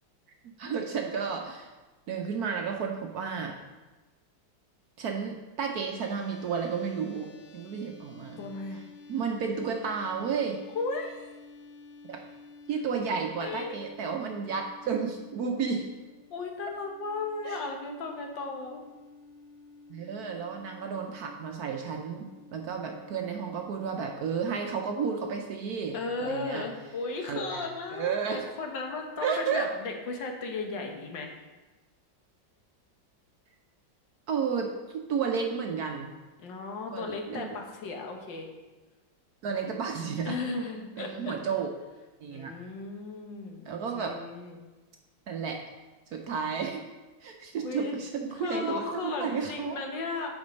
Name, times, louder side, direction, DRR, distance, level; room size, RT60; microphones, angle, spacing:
voice 1, 0.4-1.7 2.1-3.5 5.0-8.4 9.1-10.6 12.1-12.2 12.7-15.9 17.4-17.6 19.9-26.6 27.3-28.5 29.2-29.7 34.3-36.1 36.9-37.5 39.4-40.4 41.0-41.7 42.2-42.6 43.7-44.2 45.3-45.6 46.1-46.9 47.2-49.8, right 6 dB, 65° right, 3 dB, 1.0 m, -32 dB
sound 1, 6.0-24.4, left 3 dB, 50° left, 1.1 m, -52 dB
voice 2, 8.4-8.8 10.7-11.3 13.4-13.9 16.3-18.8 25.9-31.3 36.4-38.5 40.3-41.4 42.3-44.6 47.6-47.9 48.4-50.3, left 3 dB, 70° left, 3 dB, 1.7 m, -35 dB
8.4 x 5.3 x 5.2 m, 1.2 s
omnidirectional pair, 2.1 m